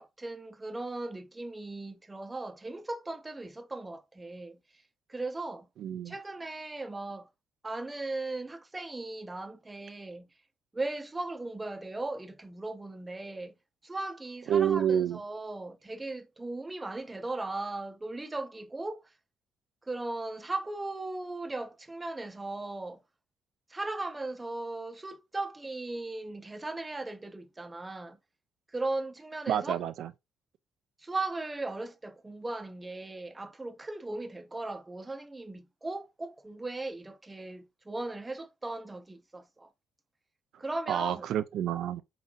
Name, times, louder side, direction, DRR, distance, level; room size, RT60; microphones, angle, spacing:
voice 1, 0.0-4.6 5.1-5.7 6.1-7.3 7.6-10.3 10.7-13.5 13.8-19.0 19.9-23.0 23.7-28.2 28.7-29.8 31.0-39.7 40.6-41.3, right 2 dB, 20° right, 0.6 m, -37 dB
voice 2, 5.8-6.1 14.5-15.2 29.5-30.1 40.9-42.0, right 9 dB, 75° right, 0.4 m, -28 dB
4.1 x 3.8 x 2.5 m
cardioid pair, 90°, 0 cm